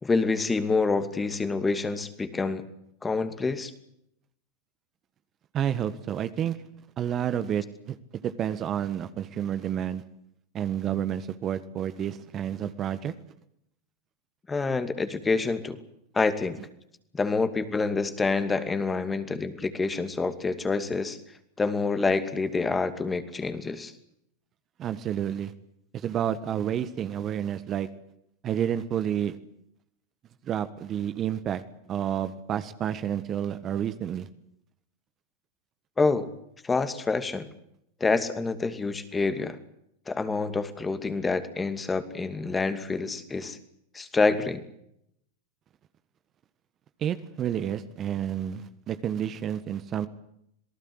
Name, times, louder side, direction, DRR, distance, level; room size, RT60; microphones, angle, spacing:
voice 1, 0.0-2.7 3.0-3.7 14.5-15.8 16.1-16.6 17.1-21.2 21.6-23.9 36.0-36.3 36.6-37.5 38.0-39.6 40.1-43.6 43.9-44.6, left 4 dB, 15° left, 10 dB, 2.5 m, -27 dB
voice 2, 5.5-6.6 7.0-8.0 8.2-10.0 10.5-13.1 24.8-25.5 25.9-27.9 28.4-29.4 30.4-31.6 31.9-34.3 47.0-50.1, right 9 dB, 35° right, 12 dB, 1.5 m, -30 dB
27.5 x 18.5 x 8.0 m, 0.76 s
hypercardioid pair, 95°, 0 cm